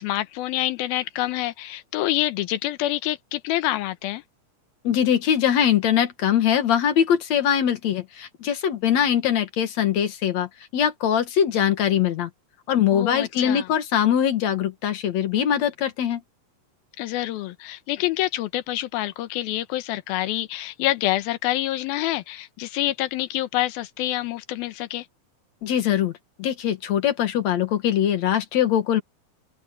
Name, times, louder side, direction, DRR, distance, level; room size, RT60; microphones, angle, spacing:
voice 1, 0.0-4.2 12.9-13.7 17.0-25.1, left 15 dB, 90° left, 2.8 m, -27 dB
voice 2, 4.8-12.3 12.7-16.2 25.6-26.1 26.4-29.0, left 9 dB, 60° left, 2.5 m, -22 dB
omnidirectional pair, 4.1 m